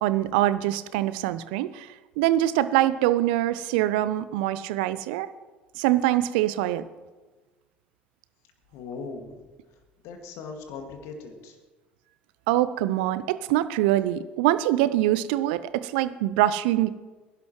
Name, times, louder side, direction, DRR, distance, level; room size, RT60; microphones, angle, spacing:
voice 1, 0.0-1.9 2.2-5.3 5.8-6.8 12.5-16.9, right 14 dB, 65° right, 15 dB, 0.6 m, -24 dB
voice 2, 8.7-9.4 10.0-11.6, left 4 dB, 60° left, 5 dB, 2.0 m, -39 dB
20.0 x 11.5 x 3.1 m, 1.2 s
figure-of-eight pair, 65°, 6 cm